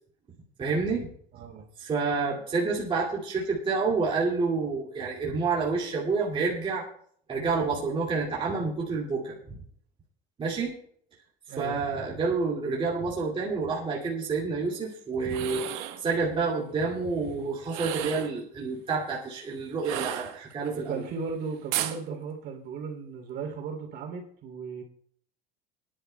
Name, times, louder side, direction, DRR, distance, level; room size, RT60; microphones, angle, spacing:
voice 1, 0.6-1.1 1.8-6.8 7.3-9.6 10.4-10.7 11.6-15.6 16.0-21.0, right 4 dB, 25° right, -4 dB, 2.3 m, -28 dB
voice 2, 1.3-1.7 11.5-11.8 20.9-24.8, right 5 dB, 50° right, 3 dB, 3.1 m, -36 dB
sound 1, 15.2-16.0 17.6-18.4 19.8-20.7 21.7-22.0, right 12 dB, 80° right, 1.3 m, -33 dB
24.5 x 10.5 x 2.3 m, 0.62 s
cardioid pair, 145°, 21 cm